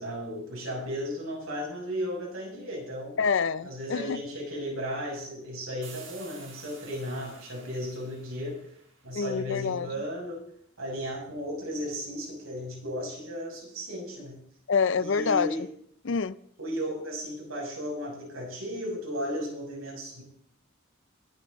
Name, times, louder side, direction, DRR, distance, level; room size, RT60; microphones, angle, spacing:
voice 1, 0.0-3.2 3.6-8.7 9.0-10.4 10.8-14.4 15.0-15.6 16.6-20.2, equal, 85° right, -1 dB, 6.5 m, -35 dB
voice 2, 3.2-4.2 9.1-9.9 14.7-15.5 16.0-16.4, left 5 dB, 60° left, 18 dB, 0.5 m, -26 dB
sound 1, 5.8-9.4, right 5 dB, 65° right, 5.1 m, -51 dB
20.5 x 9.6 x 3.9 m, 0.66 s
head